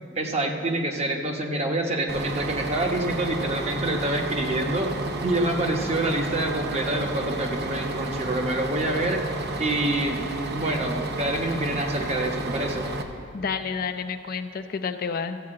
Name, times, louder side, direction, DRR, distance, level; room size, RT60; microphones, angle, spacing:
voice 1, 0.2-4.9 5.2-9.2 9.6-12.9, right 1 dB, 35° right, 2 dB, 1.0 m, -27 dB
Bus, 2.1-13.0, right 2 dB, 55° right, 0.8 m, -31 dB
voice 2, 13.3-15.4, left 5 dB, 50° left, 8 dB, 0.5 m, -30 dB
14.5 x 4.8 x 7.5 m, 2.3 s
head